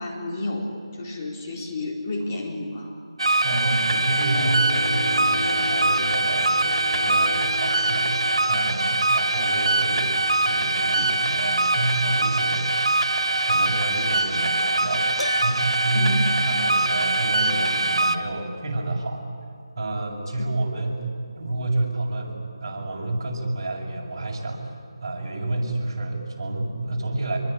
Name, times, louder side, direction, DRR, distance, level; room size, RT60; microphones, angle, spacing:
voice 1, 0.0-3.0 15.9-16.2, left 2 dB, 30° left, -2 dB, 4.2 m, -31 dB
sound 1, 3.2-18.2, right 2 dB, 80° right, 2.4 m, -23 dB
voice 2, 3.4-8.2 8.5-10.2 10.4-12.7 13.5-19.2 19.8-21.1 21.3-27.4, right 2 dB, 40° right, -2 dB, 7.1 m, -29 dB
sound 2, 4.3-18.8, left 2 dB, 50° left, 3.8 m, -40 dB
Piano, 15.2-16.0, left 2 dB, 85° left, 1.3 m, -32 dB
26.0 x 23.0 x 10.0 m, 2.4 s
figure-of-eight pair, 165°, 3 cm